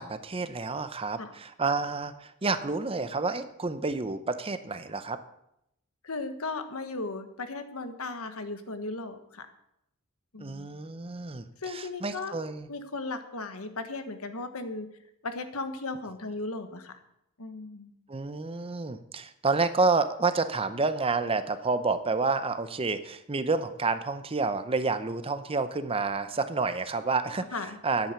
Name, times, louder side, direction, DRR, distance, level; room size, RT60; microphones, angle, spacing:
voice 1, 0.0-5.2 10.4-12.7 18.1-27.4 27.8-28.1, right 3 dB, 25° right, 11 dB, 0.7 m, -29 dB
voice 2, 6.0-9.5 10.3-10.7 11.6-12.3 12.7-14.9 15.2-17.0 17.4-17.9 27.5-27.8, left 3 dB, 75° left, 8 dB, 1.3 m, -36 dB
10.5 x 8.9 x 6.9 m, 0.80 s
head